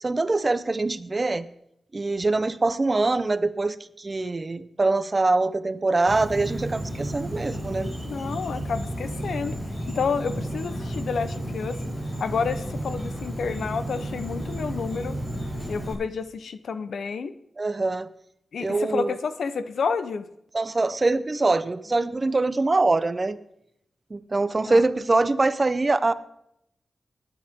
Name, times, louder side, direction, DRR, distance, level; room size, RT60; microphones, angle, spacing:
voice 1, 0.0-1.5 1.9-7.9 17.6-18.1 18.6-19.2 20.5-23.4 24.1-26.1, right 3 dB, 30° right, 14 dB, 0.7 m, -23 dB
Insect, 6.1-15.9, right 1 dB, 15° left, 6.4 m, -32 dB
voice 2, 8.0-9.5 9.9-11.8 12.2-15.1 15.7-17.3 18.5-20.3 24.7-24.8, left 5 dB, 85° left, 12 dB, 0.9 m, -29 dB
20.0 x 10.0 x 3.7 m, 0.78 s
wide cardioid pair, 95°, 0 cm